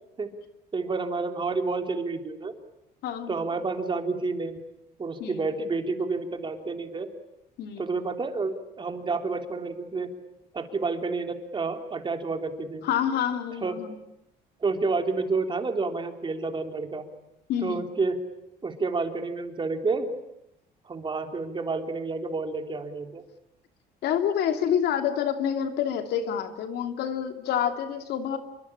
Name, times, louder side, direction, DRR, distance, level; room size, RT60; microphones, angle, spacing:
voice 1, 0.7-2.5 3.3-4.6 5.0-7.1 7.8-10.1 10.5-12.9 13.6-13.7 14.6-17.1 17.6-18.2 18.6-20.1 20.9-23.2, right 3 dB, 30° right, 5 dB, 3.5 m, -29 dB
voice 2, 3.0-3.5 5.2-5.5 7.6-7.9 12.8-13.9 17.5-17.8 24.0-28.4, left 9 dB, 75° left, 7 dB, 2.8 m, -28 dB
27.5 x 23.5 x 8.8 m, 0.85 s
cardioid pair, 110°, 17 cm